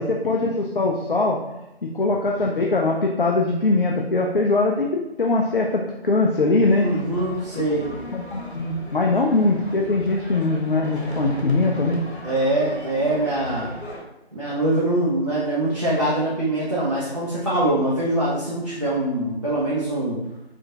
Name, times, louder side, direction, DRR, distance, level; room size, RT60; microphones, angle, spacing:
voice 1, 0.0-1.4 1.8-6.9 8.1-12.0, left 3 dB, 55° left, 0 dB, 0.5 m, -21 dB
sound 1, 6.6-14.0, left 1 dB, 90° left, 1.0 m, -38 dB
voice 2, 6.8-7.9 12.2-13.7 14.3-20.2, right 1 dB, 30° right, -10 dB, 0.6 m, -23 dB
4.8 x 2.5 x 2.7 m, 0.94 s
figure-of-eight pair, 165°, 32 cm